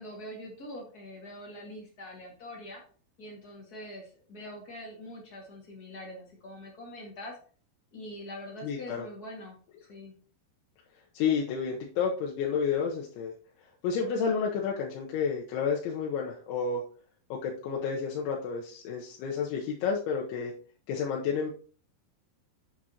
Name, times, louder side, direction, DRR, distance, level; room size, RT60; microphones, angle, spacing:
voice 1, 0.0-2.8 3.2-7.3 7.9-9.5 9.9-10.1, left 1 dB, 65° left, -1 dB, 0.9 m, -44 dB
voice 2, 8.6-9.1 11.1-13.4 13.8-16.8 17.3-20.5 20.9-21.5, left 6 dB, 85° left, -2 dB, 3.3 m, -30 dB
8.7 x 7.7 x 2.9 m, 0.42 s
omnidirectional pair, 5.3 m